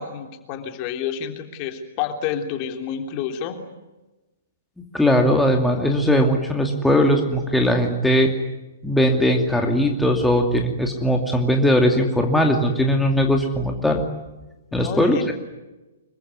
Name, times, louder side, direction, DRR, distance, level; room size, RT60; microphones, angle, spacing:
voice 1, 0.0-3.6 14.7-15.3, left 8 dB, 35° left, 5 dB, 3.3 m, -29 dB
voice 2, 4.9-8.3 8.8-14.0 14.7-15.3, equal, 5° left, 2 dB, 2.5 m, -19 dB
26.5 x 23.5 x 9.7 m, 1.1 s
figure-of-eight pair, 115°, 0 cm